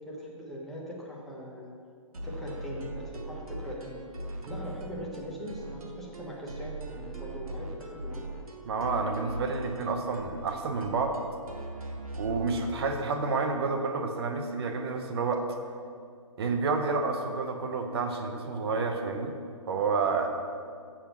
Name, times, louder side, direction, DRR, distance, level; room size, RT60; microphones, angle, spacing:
voice 1, 0.1-1.7 2.2-4.0 4.5-8.2, equal, ahead, -5 dB, 1.1 m, -41 dB
sound 1, 2.1-12.8, right 1 dB, 90° right, 1.3 m, -40 dB
voice 2, 8.7-11.2 12.2-15.5 16.4-19.4 19.7-20.3, right 4 dB, 45° right, 5 dB, 0.9 m, -29 dB
7.3 x 6.6 x 5.9 m, 2.3 s
hypercardioid pair, 155°, 18 cm